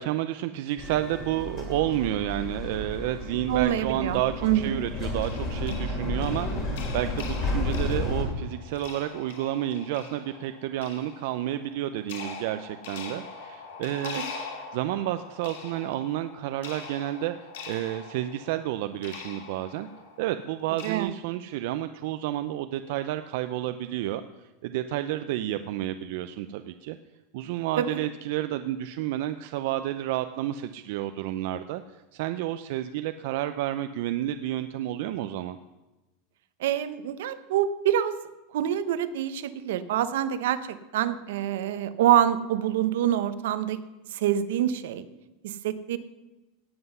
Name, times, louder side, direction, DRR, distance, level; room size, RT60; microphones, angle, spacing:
voice 1, 0.0-14.2 14.7-19.9 20.2-24.2 24.6-27.0 27.3-35.6, right 13 dB, 55° right, 10 dB, 0.5 m, -30 dB
sound 1, 0.8-8.2, left 2 dB, 30° left, 2.9 m, -32 dB
voice 2, 3.5-4.8 14.0-14.2 20.8-21.1 27.8-28.0 36.6-38.1 38.5-43.8 44.1-45.0 45.4-46.0, right 11 dB, 75° right, 13 dB, 0.8 m, -26 dB
sound 2, 5.2-21.0, left 5 dB, 80° left, 2.7 m, -43 dB
17.5 x 7.8 x 5.6 m, 1.1 s
supercardioid pair, 170°, 0 cm